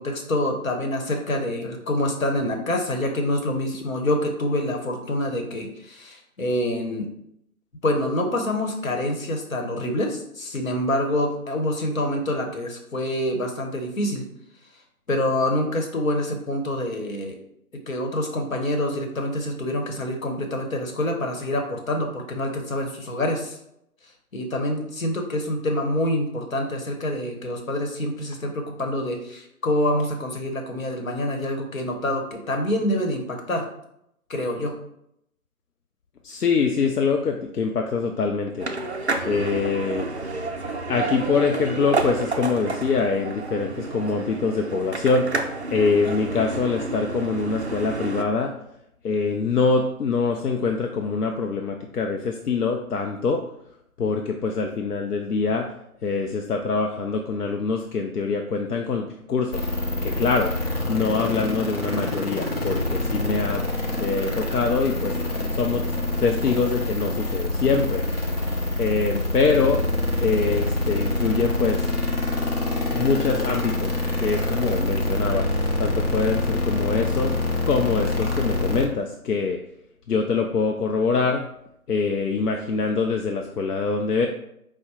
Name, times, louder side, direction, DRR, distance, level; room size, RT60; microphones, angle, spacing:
voice 1, 0.0-7.1 7.8-14.2 15.1-17.4 17.9-23.6 24.3-33.6 34.3-34.7, left 1 dB, 60° left, 3 dB, 1.1 m, -26 dB
voice 2, 36.2-38.7 39.3-40.1 40.9-45.3 45.7-48.5 49.0-53.4 54.0-55.7 56.0-59.7 60.0-60.5 60.9-63.6 64.0-65.2 65.5-65.8 66.2-68.0 68.8-69.8 70.2-71.8 72.4-72.5 72.9-73.9 74.2-75.5 75.8-77.3 77.7-79.6 80.1-81.5 81.9-84.3, left 4 dB, 85° left, 3 dB, 0.6 m, -24 dB
sound 1, 38.6-48.2, right 3 dB, 50° right, 0.4 m, -30 dB
sound 2, 59.5-78.9, left 2 dB, 40° left, 0.7 m, -26 dB
4.9 x 2.1 x 4.2 m, 0.78 s
figure-of-eight pair, 160°, 45 cm